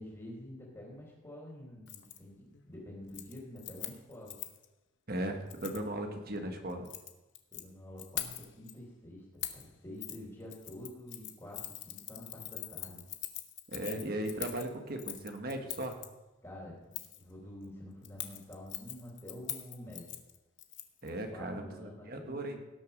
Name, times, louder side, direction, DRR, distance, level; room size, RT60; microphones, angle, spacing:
voice 1, 0.0-4.4 6.5-6.6 7.5-13.0 16.4-20.2 21.3-22.6, left 1 dB, 20° left, -9 dB, 3.2 m, -48 dB
Keys jangling, 1.9-2.2 2.5-2.8 3.1-4.7 5.5-5.8 6.7-7.6 8.0-8.7 9.4-9.7 10.0-10.2 10.5-16.1 16.9-17.2 18.0-21.1 21.4-21.5, left 12 dB, 60° left, 0.9 m, -43 dB
voice 2, 5.1-6.9 13.7-16.0 21.0-22.6, right 1 dB, 50° right, 4 dB, 1.5 m, -37 dB
18.0 x 6.6 x 5.3 m, 1.0 s
head